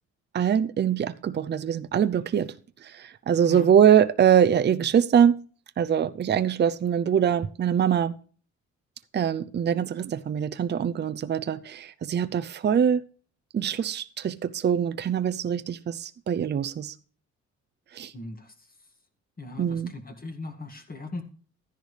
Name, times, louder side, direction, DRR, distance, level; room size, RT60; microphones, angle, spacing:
voice 1, 0.3-2.5 2.8-5.4 5.8-8.2 9.1-13.0 13.5-16.9 17.9-18.1 19.6-19.9, right 8 dB, 35° right, 0.6 m, -23 dB
voice 2, 18.1-18.7 19.4-21.2, left 2 dB, 30° left, 2.1 m, -39 dB
13.0 x 10.5 x 3.4 m
cardioid pair, 90°, 30 cm